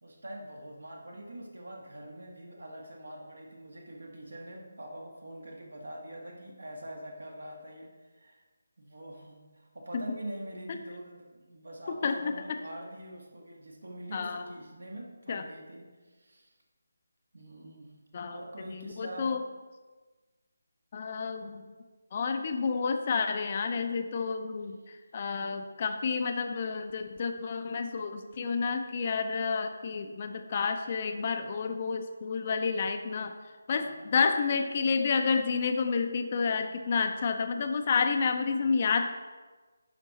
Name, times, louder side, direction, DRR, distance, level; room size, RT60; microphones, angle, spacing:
voice 1, 0.0-8.4 8.8-16.5 17.3-17.9 18.3-19.4 33.7-34.1, right 1 dB, 70° right, 1 dB, 1.6 m, -44 dB
voice 2, 11.9-12.6 14.1-14.5 15.3-15.4 18.1-18.4 18.7-19.4 20.9-21.7 22.1-33.3 33.7-39.1, left 5 dB, 35° left, 7 dB, 0.5 m, -30 dB
11.0 x 4.5 x 4.0 m, 1.3 s
figure-of-eight pair, 155°, 0 cm